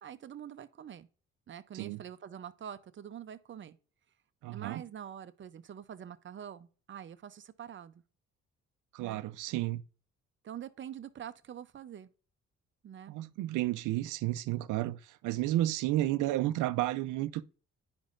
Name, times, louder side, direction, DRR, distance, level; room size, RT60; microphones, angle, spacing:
voice 1, 0.0-1.1 1.5-3.8 4.5-8.0 9.0-9.2 10.4-12.1 12.8-13.2, right 9 dB, 40° right, 0.5 m, -45 dB
voice 2, 4.4-4.8 8.9-9.8 13.1-15.0 15.2-17.5, right 15 dB, 85° right, 0.5 m, -32 dB
8.9 x 5.3 x 2.5 m
cardioid pair, 90°, 30 cm